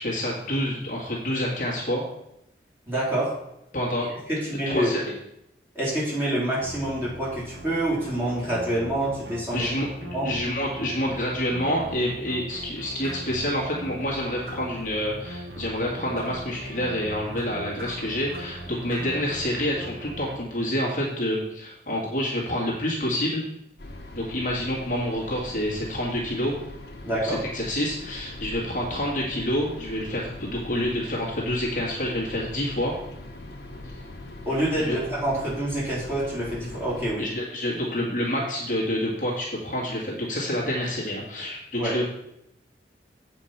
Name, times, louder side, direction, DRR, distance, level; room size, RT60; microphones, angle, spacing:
voice 1, 0.0-2.0 3.7-4.1 4.7-5.1 9.5-23.5 24.1-26.6 27.1-32.9 34.8-35.0 37.2-42.0, left 1 dB, 45° left, -3 dB, 1.9 m, -28 dB
voice 2, 2.9-3.3 4.5-4.9 5.7-9.7 10.1-10.3 27.0-27.4 34.5-37.2 41.8-42.0, right 1 dB, 15° right, -8 dB, 3.6 m, -27 dB
sound 1, 6.6-20.4, equal, 80° right, 1.5 m, -40 dB
sound 2, 13.0-13.4 14.4-14.8 16.1-16.4 17.3-18.6 18.9-19.2, right 1 dB, 50° right, 2.1 m, -43 dB
sound 3, 23.8-37.1, left 2 dB, 65° left, 1.4 m, -41 dB
7.9 x 5.2 x 5.7 m, 0.81 s
head